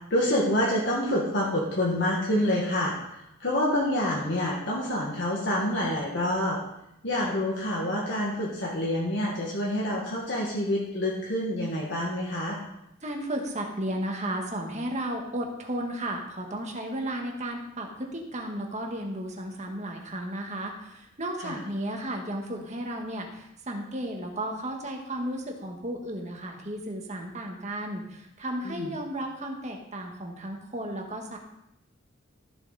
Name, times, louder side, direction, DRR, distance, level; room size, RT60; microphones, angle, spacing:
voice 1, 0.1-6.6 7.0-12.6 21.4-21.6 28.6-28.9, left 1 dB, 60° left, -4 dB, 1.8 m, -27 dB
voice 2, 13.0-31.4, right 1 dB, 35° right, 2 dB, 1.7 m, -34 dB
14.0 x 6.9 x 4.2 m, 0.84 s
head